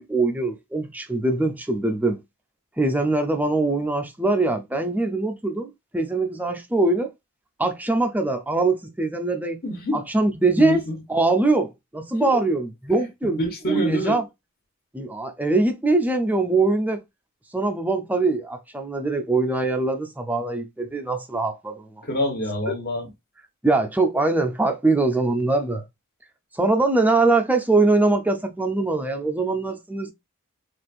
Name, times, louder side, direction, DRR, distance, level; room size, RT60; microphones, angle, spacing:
voice 1, 0.0-2.2 2.8-7.1 7.6-9.6 9.9-10.8 11.1-13.4 13.7-14.2 14.9-17.0 17.5-22.0 23.6-25.8 26.5-30.1, right 2 dB, 5° right, 0.4 m, -22 dB
voice 2, 9.6-10.0 10.6-11.0 12.2-12.4 13.4-14.2 22.0-23.1, equal, 45° left, 1.0 m, -26 dB
4.1 x 2.5 x 2.3 m
head